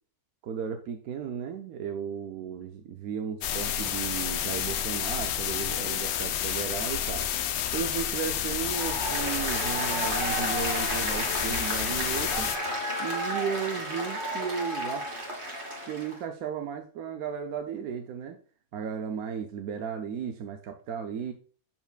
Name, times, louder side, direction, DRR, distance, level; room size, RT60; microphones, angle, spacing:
voice 1, 0.4-7.3 7.7-12.5 13.0-15.1 15.9-18.4 18.7-21.3, right 7 dB, 75° right, 5 dB, 1.1 m, -35 dB
sound 1, 3.4-12.6, left 10 dB, 75° left, 1.1 m, -30 dB
Applause, 8.6-16.2, equal, 35° right, 1.8 m, -32 dB
7.2 x 5.7 x 2.3 m, 0.40 s
omnidirectional pair, 1.6 m